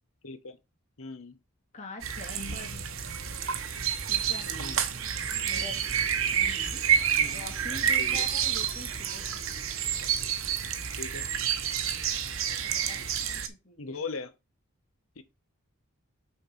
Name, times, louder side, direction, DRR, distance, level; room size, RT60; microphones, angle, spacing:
voice 1, 0.2-0.6 1.0-1.4 4.6-4.8 7.2-7.4 8.0-8.3 11.0-11.3 13.8-14.3 15.2-15.3, left 4 dB, 70° left, 1.1 m, -39 dB
voice 2, 1.7-2.9 4.1-4.8 5.5-5.8 6.3-6.8 7.3-9.8 12.6-14.0, left 2 dB, 35° left, 2.5 m, -45 dB
sound 1, 2.0-13.5, right 8 dB, 70° right, 1.1 m, -29 dB
sound 2, 3.2-10.3, equal, 10° right, 2.8 m, -51 dB
6.6 x 4.4 x 5.8 m
head